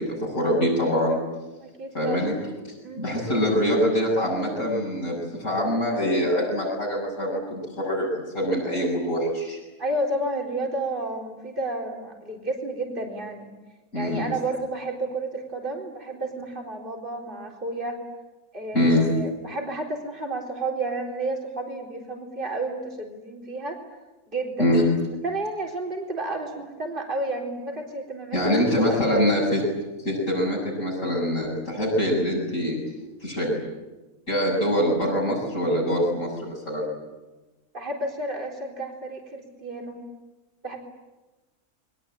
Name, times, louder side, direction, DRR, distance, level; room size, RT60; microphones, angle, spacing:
voice 1, 0.2-1.2 1.9-2.3 3.0-9.6 13.9-14.3 18.7-19.1 24.6-24.8 28.3-29.6 30.0-32.8 33.2-33.6 34.3-36.9, equal, 60° left, -5 dB, 7.9 m, -24 dB
voice 2, 1.6-2.3 2.8-3.1 9.8-13.5 13.9-18.0 18.5-23.8 24.3-24.7 25.2-29.3 37.7-40.0 40.6-40.8, right 2 dB, 35° right, 1 dB, 4.2 m, -31 dB
28.5 x 22.5 x 9.0 m, 1.1 s
omnidirectional pair, 1.5 m